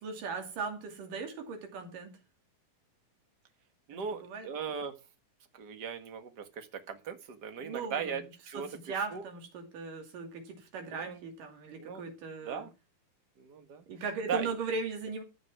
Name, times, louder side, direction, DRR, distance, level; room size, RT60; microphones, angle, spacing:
voice 1, 0.0-2.1 4.2-4.5 7.6-8.2 8.5-8.6 8.9-12.7 13.9-15.2, right 4 dB, 70° right, 4.2 m, -38 dB
voice 2, 3.9-5.0 5.5-9.2 10.9-11.3 11.8-12.1 12.4-12.7 13.4-13.8 14.3-14.5, right 6 dB, 45° right, 1.4 m, -38 dB
14.0 x 6.8 x 6.1 m
omnidirectional pair, 4.0 m